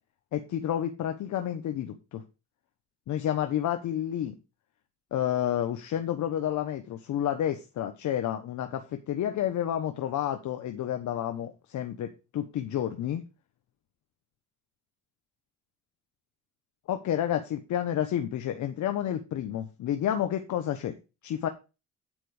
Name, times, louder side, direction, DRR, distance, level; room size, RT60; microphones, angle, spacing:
voice 1, 0.3-2.2 3.1-4.3 5.1-13.2 16.9-20.9 21.2-21.5, left 10 dB, 75° left, 7 dB, 1.2 m, -30 dB
9.4 x 4.5 x 6.5 m, 0.29 s
cardioid pair, 90°, 30 cm